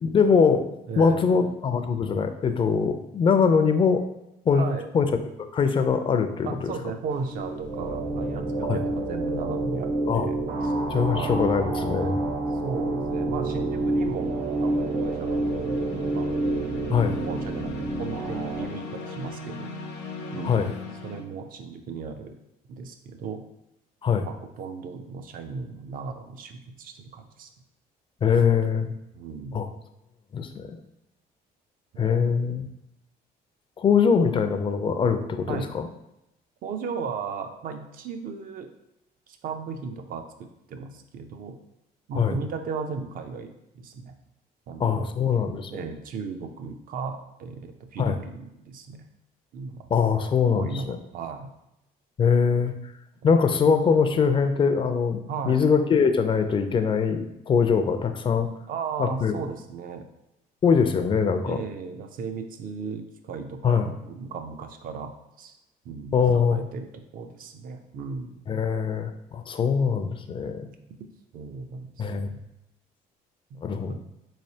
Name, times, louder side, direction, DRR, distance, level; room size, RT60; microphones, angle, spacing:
voice 1, 0.0-0.6 1.0-4.0 4.5-4.7 4.9-5.1 5.4-6.7 8.6-8.8 10.1-10.3 10.9-12.2 16.9-17.2 20.4-20.7 24.0-24.3 28.2-28.9 29.5-29.7 30.3-30.7 32.0-32.6 33.8-35.8 42.2-42.4 44.8-45.7 48.0-48.2 49.9-51.0 52.2-52.8 53.2-55.2 55.5-58.5 59.0-59.4 60.6-61.6 63.6-63.9 66.1-66.6 68.5-70.7 72.0-72.3 73.6-74.0, left 6 dB, 30° left, 8 dB, 0.4 m, -22 dB
voice 2, 0.9-1.5 4.5-4.9 6.4-10.4 10.6-10.7 11.1-11.4 12.5-15.8 16.1-16.3 16.9-19.7 20.3-20.7 21.0-22.4 22.7-23.4 24.2-27.5 28.4-28.6 29.1-29.6 31.9-32.3 35.5-35.7 36.6-38.7 39.3-41.6 42.1-44.2 44.7-45.1 45.7-49.0 49.5-49.9 50.5-51.5 55.3-55.6 58.7-60.0 61.4-65.6 65.8-66.2 66.5-68.4 71.3-72.4 73.5-73.6 73.9-74.0, right 5 dB, 55° right, 6 dB, 0.5 m, -36 dB
sound 1, 7.1-7.5 13.4-21.2, left 4 dB, 90° left, 0.6 m, -40 dB
sound 2, 7.1-18.6, right 2 dB, 85° right, 0.8 m, -28 dB
4.0 x 3.2 x 2.7 m, 0.88 s
cardioid pair, 110°, 17 cm